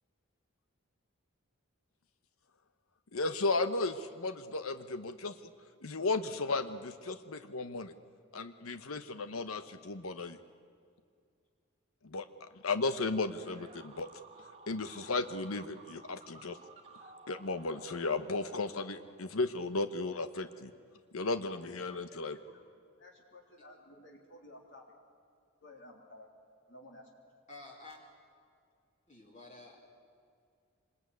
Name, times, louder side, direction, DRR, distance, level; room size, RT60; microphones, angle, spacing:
voice 1, 3.1-5.3 5.8-7.9 8.3-10.4 12.0-14.1 14.7-16.6 17.3-20.7 21.1-22.4, left 3 dB, 90° left, 11 dB, 1.0 m, -35 dB
sound 1, 13.4-19.5, right 3 dB, 30° right, 1.5 m, -55 dB
voice 2, 22.3-22.6 23.0-24.8 25.6-26.3 26.7-27.1, left 1 dB, 60° left, 1 dB, 3.4 m, -54 dB
voice 3, 27.5-28.0 29.1-29.8, left 2 dB, 35° left, -2 dB, 3.1 m, -50 dB
25.5 x 21.0 x 9.5 m, 2.3 s
head